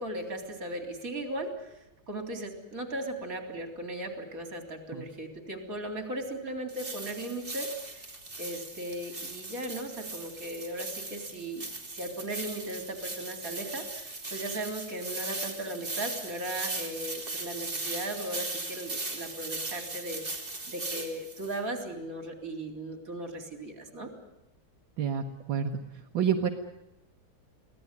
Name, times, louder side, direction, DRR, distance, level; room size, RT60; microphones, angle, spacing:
voice 1, 0.0-1.8 2.1-8.1 8.4-11.7 11.9-20.2 20.7-24.1, right 1 dB, 45° right, 5 dB, 3.9 m, -37 dB
sound 1, 6.7-21.6, right 2 dB, 25° right, 3.0 m, -38 dB
voice 2, 25.0-25.8 26.1-26.5, right 7 dB, 75° right, 3 dB, 2.0 m, -28 dB
24.5 x 17.5 x 9.7 m, 0.91 s
omnidirectional pair, 2.1 m